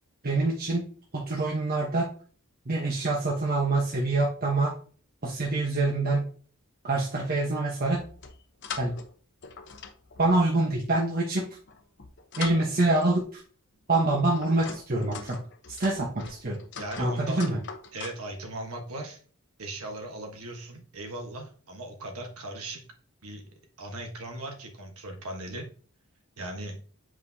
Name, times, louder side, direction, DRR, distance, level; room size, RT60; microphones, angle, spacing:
voice 1, 0.2-0.8 1.1-2.1 2.7-4.7 5.2-6.3 6.8-8.0 8.8-9.0 10.2-11.4 12.4-13.4 13.9-15.4 15.7-16.6 17.0-17.6, right 2 dB, 45° right, -2 dB, 1.1 m, -26 dB
sound 1, 7.9-9.1 9.4-10.8 11.5-13.2 13.9-18.2, left 6 dB, 55° left, 0.8 m, -42 dB
voice 2, 16.8-17.5 17.9-19.2 19.6-22.8 23.2-23.4 23.8-25.7 26.4-26.8, right 1 dB, 75° right, 3 dB, 1.3 m, -38 dB
7.8 x 5.0 x 2.7 m, 0.42 s
head